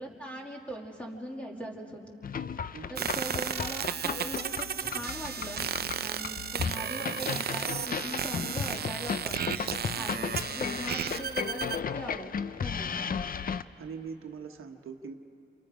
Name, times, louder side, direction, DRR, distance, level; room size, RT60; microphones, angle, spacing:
voice 1, 0.0-2.1 2.9-5.7 6.0-9.5 9.9-12.3 12.6-13.1, equal, 5° left, -1 dB, 2.2 m, -40 dB
sound 1, 2.2-13.6, left 6 dB, 45° left, 0.5 m, -35 dB
sound 2, 3.0-11.8, right 8 dB, 50° right, 0.5 m, -34 dB
voice 2, 13.8-15.1, right 5 dB, 90° right, 5 dB, 1.2 m, -42 dB
28.5 x 28.0 x 5.1 m, 2.9 s
wide cardioid pair, 165°, 21 cm